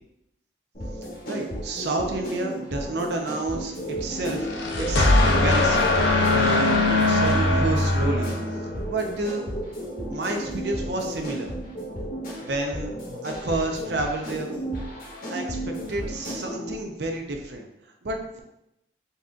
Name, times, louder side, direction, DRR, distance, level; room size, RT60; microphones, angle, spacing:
sound 1, 0.7-16.7, right 1 dB, 50° left, 0.9 m, -34 dB
voice 1, 1.3-4.5 4.8-5.8 6.3-8.3 8.9-9.4 10.1-11.5 12.4-12.9 13.2-14.6 15.3-17.7 18.0-18.4, right 2 dB, 70° right, 3 dB, 0.6 m, -30 dB
sound 2, 4.3-8.8, left 2 dB, 80° left, 0.6 m, -21 dB
4.0 x 3.7 x 2.4 m, 0.85 s
head